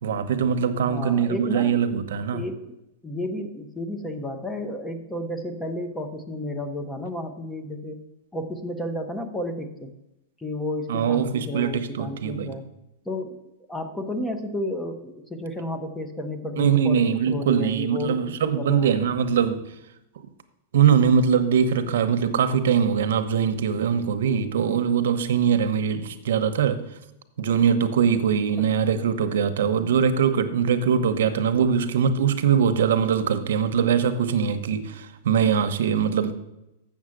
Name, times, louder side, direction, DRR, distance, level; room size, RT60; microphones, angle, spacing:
voice 1, 0.0-2.4 10.9-12.5 16.6-19.6 20.7-26.8 27.4-36.3, right 7 dB, 75° right, 0.9 m, -22 dB
voice 2, 0.8-1.8 2.3-2.7 3.0-8.0 8.3-9.9 10.4-12.7 13.0-13.4 13.7-18.9 28.6-28.7, left 1 dB, 5° left, 0.7 m, -32 dB
7.4 x 7.1 x 6.4 m
supercardioid pair, 165°, 0 cm